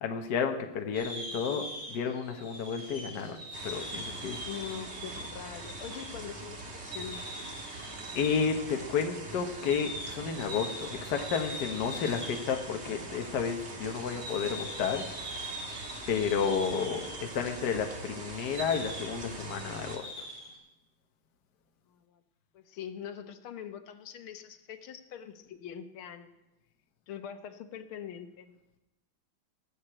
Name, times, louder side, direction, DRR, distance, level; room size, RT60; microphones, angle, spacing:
voice 1, 0.0-4.4 8.1-15.4 16.1-20.3, left 6 dB, 60° left, 5 dB, 1.5 m, -32 dB
sound 1, 0.9-12.8 13.1-13.2 13.9-20.6, equal, 60° right, 5.0 m, -43 dB
sound 2, 3.5-20.0, right 2 dB, 35° right, 1.7 m, -43 dB
voice 2, 4.4-7.2 21.9-22.2 22.5-26.3 27.1-28.8, left 9 dB, 90° left, 8 dB, 1.8 m, -43 dB
16.0 x 6.6 x 8.9 m, 0.95 s
omnidirectional pair, 2.2 m